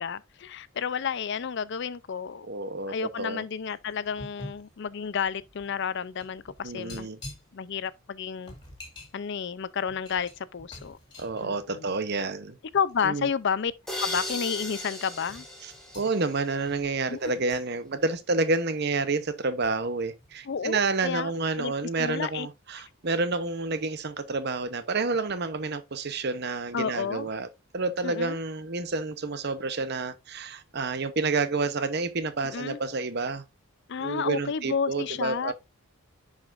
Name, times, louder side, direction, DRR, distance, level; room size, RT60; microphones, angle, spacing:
voice 1, 0.0-2.5 2.9-7.1 7.5-8.5 9.1-11.0 11.4-11.9 12.7-13.7 14.0-15.4 17.1-17.3 20.5-20.8 21.0-21.7 22.0-22.5 26.7-27.3 28.0-28.4 32.5-32.8 33.9-35.5, left 6 dB, 55° left, 0.4 m, -31 dB
voice 2, 2.5-3.4 6.6-7.2 11.2-12.6 13.0-13.3 15.6-27.5 27.7-33.4 34.0-35.5, right 3 dB, 50° right, 0.8 m, -29 dB
sound 1, 3.5-12.4 12.8-13.0 13.7-13.8 14.1-14.7 15.3-19.2 19.6-21.0 21.3-21.5, left 1 dB, 20° left, 2.5 m, -48 dB
sound 2, 13.9-16.7, left 1 dB, ahead, 1.8 m, -36 dB
10.5 x 4.9 x 2.5 m
head